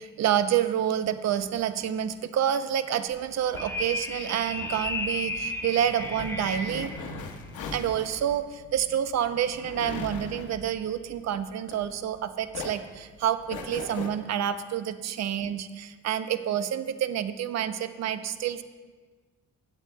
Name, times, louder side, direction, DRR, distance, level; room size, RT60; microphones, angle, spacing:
voice 1, 0.0-7.2 7.7-18.6, right 10 dB, 60° right, 12 dB, 0.6 m, -28 dB
sound 1, 3.1-12.2 12.5-14.1, left 5 dB, 75° left, 1.1 m, -40 dB
sound 2, 3.6-7.0, left 2 dB, 10° left, 1.0 m, -33 dB
17.5 x 8.1 x 2.2 m, 1.4 s
cardioid pair, 90°, 30 cm